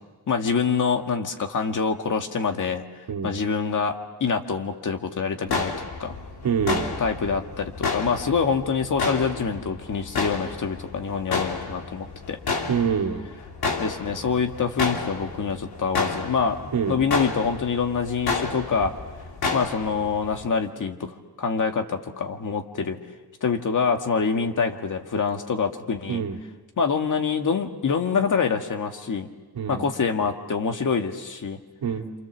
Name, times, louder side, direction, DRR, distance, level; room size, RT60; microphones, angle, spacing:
voice 1, 0.3-2.8 3.2-5.7 6.0-6.1 7.0-12.4 13.8-18.9 19.5-23.0 23.4-26.2 26.8-29.3 29.7-31.6, left 5 dB, 50° left, 4 dB, 2.0 m, -25 dB
sound 1, 5.5-20.5, left 4 dB, 70° left, 3.0 m, -31 dB
voice 2, 6.4-6.9 12.7-13.2 16.7-17.0 26.1-26.4 29.5-29.8 31.8-32.1, right 7 dB, 65° right, 4 dB, 2.2 m, -25 dB
28.5 x 27.5 x 7.4 m, 1.3 s
wide cardioid pair, 155°, 39 cm